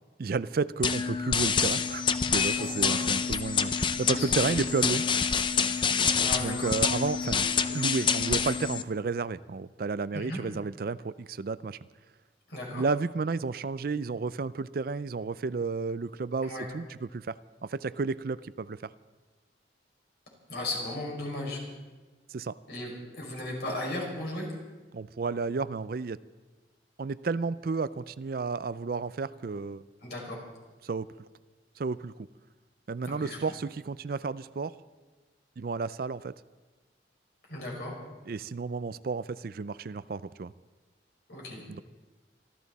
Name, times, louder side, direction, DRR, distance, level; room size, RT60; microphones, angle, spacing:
voice 1, 0.2-5.1 6.4-11.8 12.7-18.9 22.3-22.6 24.9-26.2 27.0-29.8 30.8-31.1 31.8-32.3 32.9-34.7 35.6-36.3 38.3-40.5 41.7-41.8, right 4 dB, 55° right, 16 dB, 0.4 m, -32 dB
sound 1, 0.8-8.8, left 6 dB, 25° left, 0.6 m, -27 dB
voice 2, 2.5-3.0 4.1-4.6 6.2-6.7 10.1-10.4 12.5-12.8 16.4-16.7 20.5-21.6 22.7-24.5 30.0-30.4 33.1-33.4 37.5-37.9 41.3-41.6, left 1 dB, 60° left, -1 dB, 5.8 m, -36 dB
25.5 x 13.5 x 4.1 m, 1.3 s
head